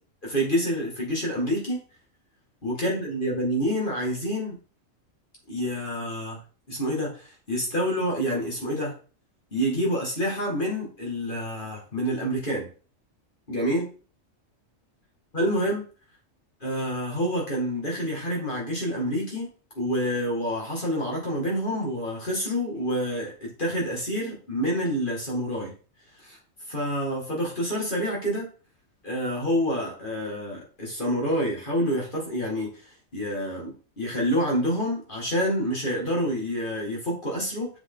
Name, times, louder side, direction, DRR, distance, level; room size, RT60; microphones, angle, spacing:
voice 1, 0.2-1.8 2.6-4.6 5.5-6.4 6.7-8.9 9.5-12.7 13.5-13.9 15.3-15.8 16.6-19.5 19.8-25.7 26.2-26.4 26.7-28.5 29.0-32.8 33.1-37.7, equal, 40° left, -2 dB, 2.4 m, -27 dB
7.3 x 4.8 x 3.9 m, 0.37 s
omnidirectional pair, 1.4 m